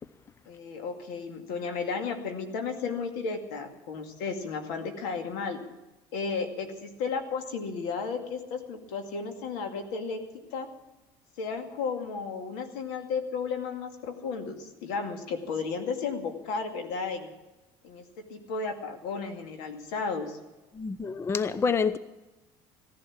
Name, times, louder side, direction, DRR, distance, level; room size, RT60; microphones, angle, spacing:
voice 1, 0.5-5.6 6.1-10.2 10.5-10.7 11.4-17.3 17.8-20.4, left 5 dB, 85° left, 2.3 m, -33 dB
voice 2, 20.7-22.0, left 5 dB, 25° left, 0.6 m, -27 dB
16.0 x 11.0 x 7.3 m
supercardioid pair, 110°, 11 cm